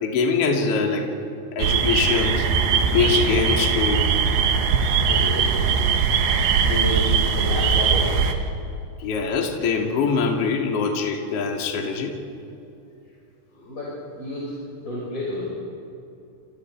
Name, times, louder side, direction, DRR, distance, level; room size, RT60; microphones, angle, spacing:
voice 1, 0.0-1.1 1.5-2.5 2.9-4.1 9.0-12.1, left 5 dB, 40° left, 1 dB, 2.8 m, -23 dB
sound 1, 1.6-8.3, right 6 dB, 75° right, 3.6 m, -20 dB
voice 2, 5.1-5.8 6.6-8.3 13.5-14.5 14.8-15.5, left 1 dB, 15° left, -6 dB, 6.2 m, -30 dB
29.5 x 28.0 x 4.8 m, 2.8 s
omnidirectional pair, 5.5 m